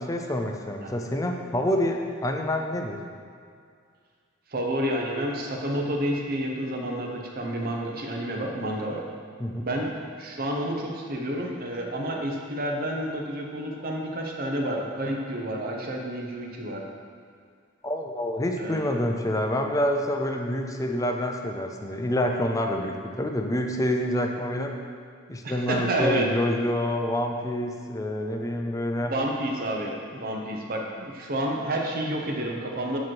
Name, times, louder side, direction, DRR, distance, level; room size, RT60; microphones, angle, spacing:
voice 1, 0.0-3.0 9.4-9.6 17.8-24.8 25.3-29.1, left 1 dB, 15° left, 3 dB, 0.4 m, -27 dB
voice 2, 4.5-9.0 9.6-16.8 18.6-19.0 25.4-26.3 29.1-33.0, right 1 dB, 50° right, 0 dB, 0.8 m, -29 dB
8.5 x 3.1 x 4.5 m, 2.2 s
head